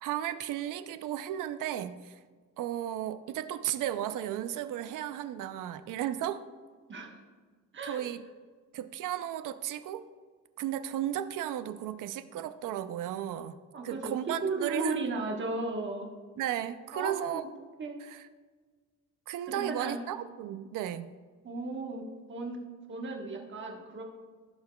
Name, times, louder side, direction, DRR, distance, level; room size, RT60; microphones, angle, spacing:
voice 1, 0.0-2.2 2.6-6.4 7.8-8.2 8.7-10.1 10.6-13.6 13.8-15.1 16.4-17.4 18.0-18.3 19.3-21.1, right 11 dB, 85° right, 11 dB, 0.5 m, -34 dB
voice 2, 7.7-8.0 13.7-16.1 16.9-17.5 17.8-18.0 19.6-20.0 21.4-22.6 22.9-24.0, right 3 dB, 40° right, 1 dB, 1.2 m, -35 dB
15.5 x 5.7 x 2.2 m, 1.5 s
cardioid pair, 145°, 31 cm